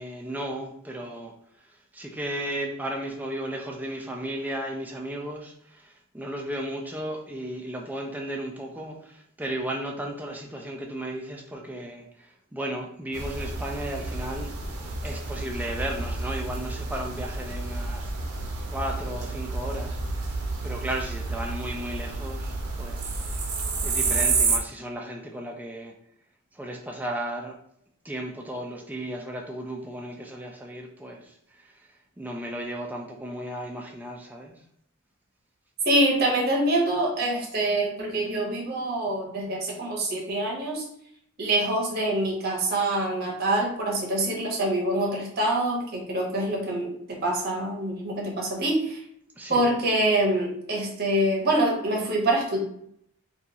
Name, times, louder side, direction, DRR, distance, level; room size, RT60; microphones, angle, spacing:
voice 1, 0.0-1.3 1.9-14.5 15.0-18.1 18.7-20.3 20.6-23.2 23.8-25.9 26.5-27.6 28.0-31.8 32.2-34.5 49.4-49.7, right 1 dB, 10° right, 1 dB, 0.3 m, -35 dB
sound 1, 13.1-24.6, right 3 dB, 90° right, 0.6 m, -30 dB
voice 2, 35.9-40.8 41.4-49.0 49.5-52.6, right 1 dB, 45° right, -1 dB, 0.7 m, -25 dB
2.8 x 2.3 x 2.6 m, 0.71 s
head